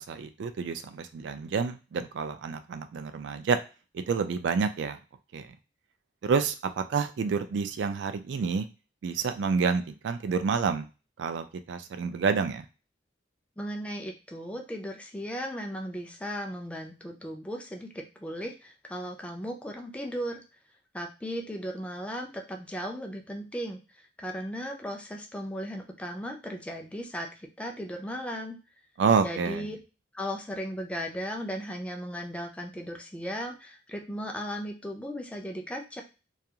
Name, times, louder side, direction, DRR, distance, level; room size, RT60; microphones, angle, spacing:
voice 1, 0.0-3.6 3.9-5.0 5.3-5.4 6.2-8.7 9.0-10.8 11.2-12.7 29.0-29.7, right 5 dB, 70° right, 9 dB, 0.3 m, -28 dB
voice 2, 13.6-20.4 20.9-23.8 24.2-28.6 29.2-29.8 30.1-36.0, equal, 5° left, 2 dB, 0.4 m, -36 dB
2.3 x 2.3 x 2.8 m, 0.32 s
head